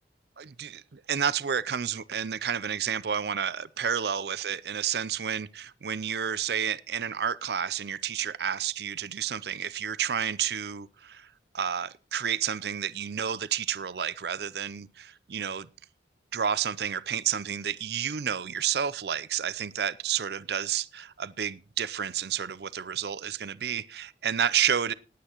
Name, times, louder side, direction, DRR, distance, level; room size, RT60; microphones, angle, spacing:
voice 1, 0.4-11.3 11.5-15.7 16.3-24.9, right 8 dB, 65° right, 0.5 m, -30 dB
19.5 x 8.4 x 3.0 m
head